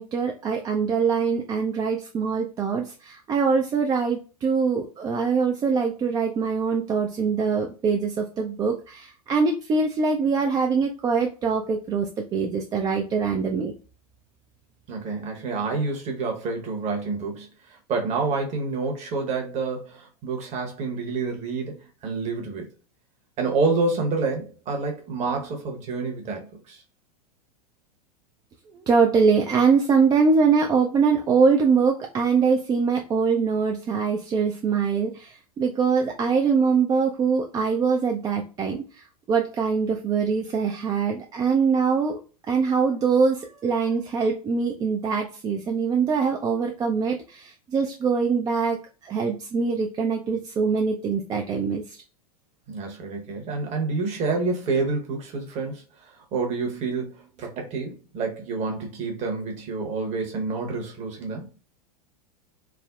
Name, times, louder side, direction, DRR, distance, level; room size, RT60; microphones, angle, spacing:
voice 1, 0.0-13.7 28.7-42.2 42.5-52.0, right 5 dB, 20° right, 0.3 m, -23 dB
voice 2, 14.9-22.7 23.4-26.8 52.7-61.5, right 4 dB, 35° right, 0.9 m, -28 dB
3.4 x 2.0 x 2.3 m
figure-of-eight pair, 90°, 20 cm